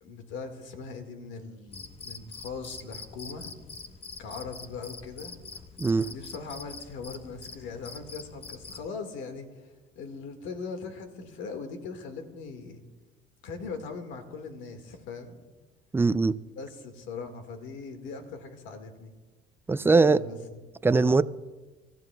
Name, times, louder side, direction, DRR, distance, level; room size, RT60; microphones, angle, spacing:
voice 1, 0.0-3.6 4.2-5.4 6.1-12.8 13.4-15.4 16.6-19.1 19.9-20.4 20.9-21.2, left 4 dB, 75° left, 1.9 m, -40 dB
Cricket, 1.7-8.9, left 4 dB, 30° left, 1.0 m, -44 dB
voice 2, 5.8-6.1 15.9-16.4 19.7-20.2 20.8-21.2, right 3 dB, 10° right, 0.4 m, -21 dB
25.5 x 14.0 x 2.3 m
supercardioid pair, 90°, 20 cm